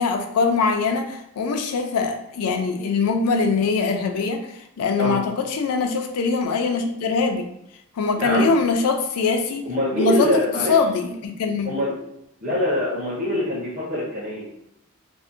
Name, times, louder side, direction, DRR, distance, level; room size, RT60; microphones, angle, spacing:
voice 1, 0.0-4.4 4.8-7.5 8.0-9.6 9.9-10.3 10.7-11.8, left 4 dB, 85° left, 4 dB, 0.4 m, -22 dB
voice 2, 8.1-8.5 9.7-10.8 11.6-11.9 12.4-14.5, left 1 dB, 35° right, -9 dB, 0.6 m, -24 dB
2.6 x 2.1 x 2.5 m, 0.82 s
head